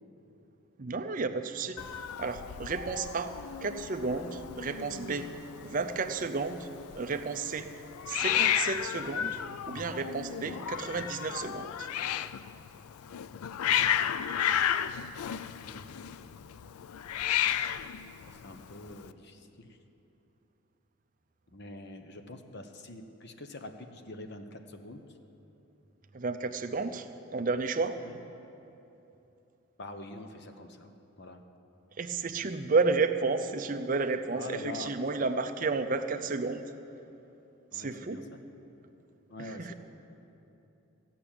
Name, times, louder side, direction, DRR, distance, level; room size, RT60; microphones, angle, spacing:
voice 1, 0.8-1.8 2.2-3.3 3.6-5.3 5.6-6.7 6.9-7.7 8.1-9.4 9.7-11.9 26.1-27.1 27.3-28.0 32.0-36.6 37.7-38.2 39.4-39.7, right 4 dB, 35° right, 7 dB, 0.5 m, -32 dB
Hiss, 1.8-19.1, left 10 dB, 80° left, 0.4 m, -33 dB
voice 2, 15.5-16.1 18.2-19.8 21.5-25.0 28.0-28.2 29.8-30.9 31.2-31.4 34.3-34.9 37.7-38.2 39.3-39.7, left 2 dB, 50° left, 6 dB, 0.8 m, -45 dB
15.0 x 5.9 x 8.7 m, 3.0 s
head